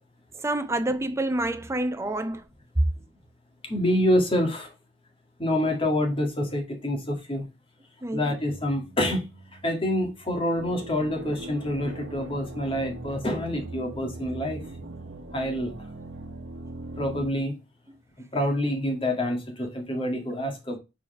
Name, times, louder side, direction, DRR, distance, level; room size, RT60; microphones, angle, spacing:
voice 1, 0.4-2.4 8.0-8.2, right 1 dB, 15° right, 0.5 m, -27 dB
voice 2, 3.7-4.7 5.4-7.4 8.1-9.3 9.6-14.6 15.3-15.7 17.0-17.6 18.3-20.8, left 1 dB, 30° left, 1.9 m, -27 dB
sound 1, 8.5-17.3, right 2 dB, 70° right, 1.0 m, -40 dB
4.9 x 4.3 x 5.1 m
head